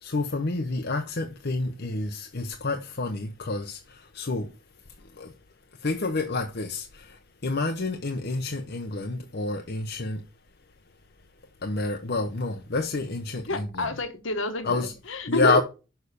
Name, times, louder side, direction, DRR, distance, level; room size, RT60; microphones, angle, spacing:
voice 1, 0.0-4.5 5.2-5.3 5.8-10.2 11.6-13.9 14.6-14.9 15.3-15.6, left 3 dB, 55° left, 0.9 m, -29 dB
voice 2, 13.5-15.6, left 2 dB, 70° left, 1.5 m, -29 dB
6.6 x 5.8 x 6.8 m
head